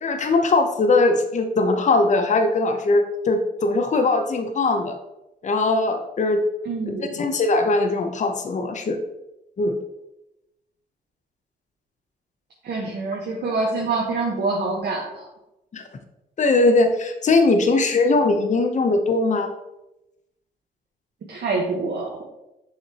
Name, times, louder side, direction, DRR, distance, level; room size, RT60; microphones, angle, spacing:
voice 1, 0.0-4.9 5.4-6.4 7.0-9.0 9.6-9.7 15.7-15.8 16.4-19.5, left 3 dB, 40° left, 6 dB, 0.8 m, -20 dB
voice 2, 6.6-7.2 12.6-15.2 21.3-22.2, right 3 dB, 65° right, -2 dB, 1.2 m, -26 dB
6.6 x 5.7 x 2.9 m, 0.93 s
cardioid pair, 75°, 18 cm